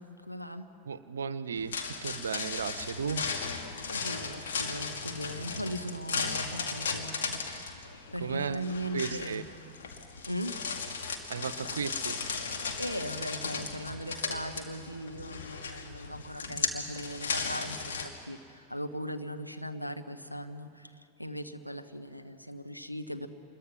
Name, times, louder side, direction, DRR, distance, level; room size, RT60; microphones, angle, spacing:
voice 1, 0.0-0.7 3.9-9.4 10.3-10.6 12.4-12.5 12.8-23.3, equal, 90° left, 6 dB, 1.1 m, -39 dB
voice 2, 0.8-3.3 6.1-6.4 8.2-8.6 8.9-9.4 11.3-12.2, right 6 dB, 70° right, 15 dB, 0.7 m, -35 dB
sound 1, 1.6-18.1, left 5 dB, 65° left, 2.1 m, -36 dB
27.0 x 22.0 x 6.1 m, 2.5 s
figure-of-eight pair, 90°, 0 cm